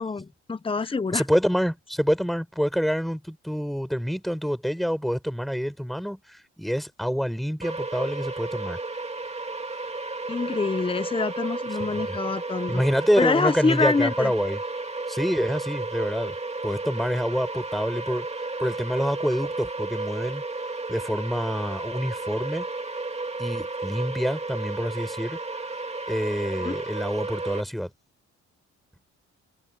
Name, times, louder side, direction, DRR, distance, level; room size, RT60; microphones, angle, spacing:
voice 1, 0.0-1.2 10.3-12.8 13.2-14.3 26.6-26.8, left 4 dB, 20° left, 1.0 m, -26 dB
voice 2, 1.1-8.8 11.8-12.2 12.7-14.6 15.1-16.4 16.6-18.3 18.6-20.4 20.9-22.7 23.4-25.4 26.1-27.9, equal, ahead, 7.0 m, -27 dB
sound 1, 7.6-27.6, right 3 dB, 20° right, 2.6 m, -33 dB
cardioid pair, 90°, 30 cm